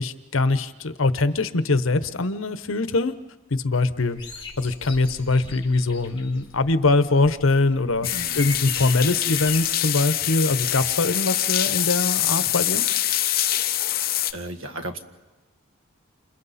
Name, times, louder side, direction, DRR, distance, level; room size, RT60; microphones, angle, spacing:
voice 1, 0.0-3.1 3.5-4.2 4.6-8.1 8.4-12.8, left 3 dB, 80° left, 12 dB, 0.9 m, -22 dB
sound 1, 4.2-9.6, left 4 dB, 25° left, 3.1 m, -40 dB
sound 2, 8.0-14.3, left 12 dB, 45° left, 0.7 m, -24 dB
voice 2, 8.0-8.4 14.3-15.0, right 1 dB, 80° right, 7 dB, 1.6 m, -34 dB
30.0 x 27.5 x 4.2 m, 1.1 s
head